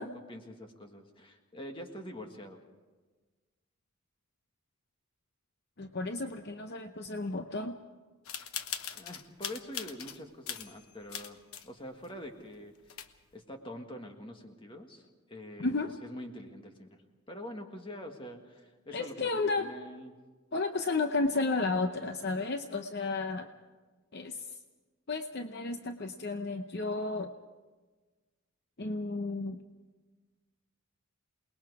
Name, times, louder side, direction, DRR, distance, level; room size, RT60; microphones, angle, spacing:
voice 1, 0.0-2.6 8.9-13.0 13.3-15.7 16.0-17.0 17.3-20.2, equal, 25° left, 4 dB, 1.7 m, -45 dB
voice 2, 5.8-7.8 15.6-15.9 18.9-19.7 20.5-23.5 24.1-24.4 25.1-27.3 28.8-29.6, left 3 dB, 50° left, 7 dB, 0.7 m, -32 dB
sound 1, 8.2-10.2 10.5-11.7 12.0-12.1 12.6-12.7 12.9-13.3, left 8 dB, 85° left, 1.1 m, -40 dB
28.0 x 20.0 x 4.8 m, 1.3 s
head